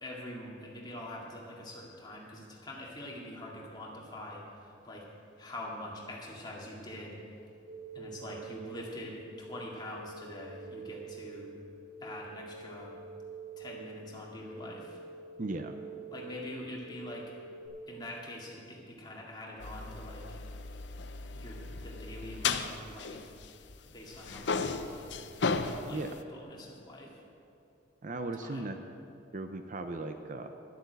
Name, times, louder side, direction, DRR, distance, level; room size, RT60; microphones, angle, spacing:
voice 1, 0.0-5.1 5.4-7.2 7.9-11.5 12.0-13.0 13.6-15.0 16.1-17.3 17.9-20.4 21.3-23.4 23.9-25.2 25.6-27.1 28.4-28.7, left 1 dB, 20° left, -3 dB, 2.2 m, -44 dB
sound 1, 7.7-17.7, right 4 dB, 70° right, 2.1 m, -47 dB
voice 2, 15.4-15.8 25.9-26.1 28.0-28.8 29.3-30.5, right 2 dB, 40° right, 7 dB, 0.6 m, -37 dB
sound 2, 19.6-23.8 24.1-26.2, left 4 dB, 65° left, 0.6 m, -35 dB
12.0 x 8.0 x 8.0 m, 2.6 s
head